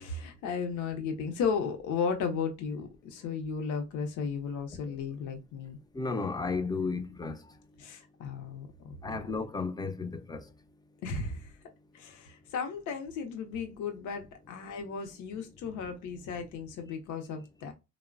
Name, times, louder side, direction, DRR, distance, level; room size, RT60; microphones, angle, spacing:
voice 1, 0.0-5.8 7.8-9.0 11.0-11.6 11.9-17.7, left 5 dB, 80° left, 0.6 m, -35 dB
voice 2, 5.9-7.4 9.0-10.4, left 4 dB, 15° left, 0.4 m, -33 dB
3.1 x 2.0 x 2.3 m
cardioid pair, 90°, 30 cm